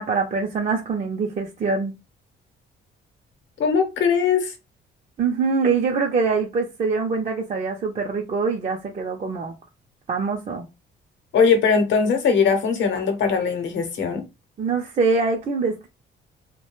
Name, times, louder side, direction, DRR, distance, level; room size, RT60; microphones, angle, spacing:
voice 1, 0.0-2.0 5.2-9.5 10.1-10.7 14.6-15.9, right 4 dB, 35° right, 0.5 m, -24 dB
voice 2, 3.6-4.5 11.3-14.2, left 5 dB, 70° left, 0.8 m, -20 dB
2.3 x 2.1 x 3.0 m
cardioid pair, 90°, 20 cm